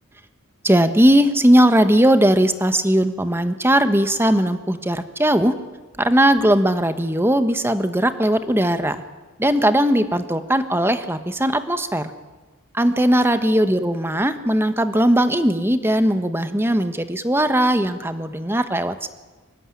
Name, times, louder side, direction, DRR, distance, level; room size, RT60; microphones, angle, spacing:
voice 1, 0.6-5.6 6.0-9.0 9.4-12.1 12.7-19.1, right 1 dB, 10° right, 10 dB, 1.3 m, -18 dB
24.5 x 20.0 x 10.0 m, 1.3 s
head